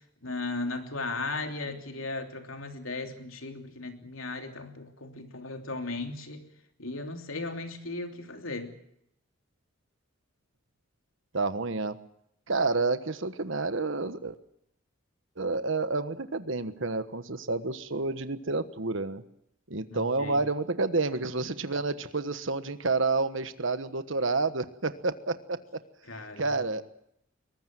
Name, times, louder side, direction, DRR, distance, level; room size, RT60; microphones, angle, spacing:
voice 1, 0.2-6.4 6.8-8.7 19.9-20.3 26.1-26.5, left 3 dB, 80° left, 5 dB, 3.1 m, -36 dB
voice 2, 11.3-12.0 12.5-14.4 15.4-19.2 19.7-25.8 26.4-26.8, right 3 dB, 65° right, 11 dB, 1.3 m, -29 dB
22.5 x 19.5 x 7.6 m, 0.75 s
head